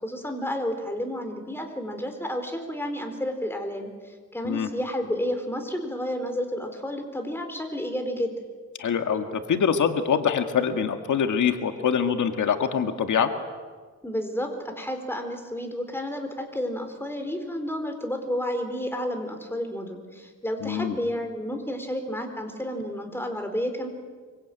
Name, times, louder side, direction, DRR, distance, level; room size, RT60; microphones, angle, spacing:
voice 1, 0.0-8.3 14.0-23.9, equal, 10° left, 5 dB, 4.2 m, -31 dB
voice 2, 8.8-13.3 20.6-21.0, left 7 dB, 80° left, 6 dB, 1.9 m, -24 dB
25.5 x 24.5 x 9.1 m, 1.5 s
wide cardioid pair, 110°, 30 cm